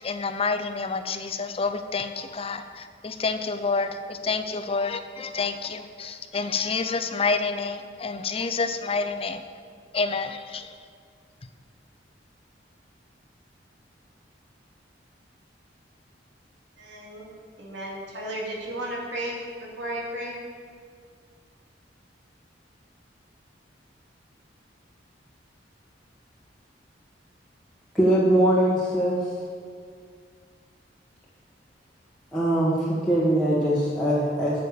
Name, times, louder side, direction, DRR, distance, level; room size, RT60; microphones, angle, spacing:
voice 1, 0.0-9.4 9.9-10.7, left 4 dB, 30° left, 9 dB, 0.5 m, -28 dB
voice 2, 16.8-17.3 17.6-20.3, right 1 dB, 85° right, -3 dB, 2.5 m, -34 dB
voice 3, 27.9-29.2 32.3-34.6, right 1 dB, 5° left, -9 dB, 1.5 m, -22 dB
9.7 x 6.7 x 7.0 m, 2.1 s
head